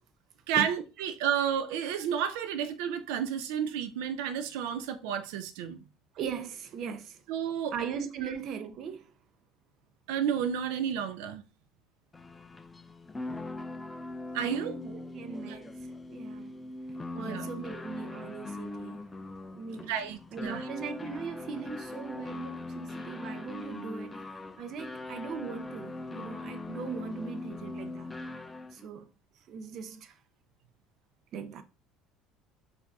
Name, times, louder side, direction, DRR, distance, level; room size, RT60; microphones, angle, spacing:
voice 1, 0.5-5.8 7.3-7.7 10.1-11.4 14.3-14.7 15.5-15.6 17.2-17.5 19.9-20.6, right 8 dB, 90° right, 0.5 m, -31 dB
voice 2, 6.1-7.2 7.7-9.1 14.4-16.5 17.1-19.1 19.5-19.9 20.3-28.1 28.7-29.1 29.5-30.2 31.3-31.6, right 6 dB, 45° right, 0.6 m, -39 dB
sound 1, 12.1-28.9, left 2 dB, 15° left, 0.4 m, -41 dB
4.6 x 2.6 x 3.5 m
cardioid pair, 145°, 0 cm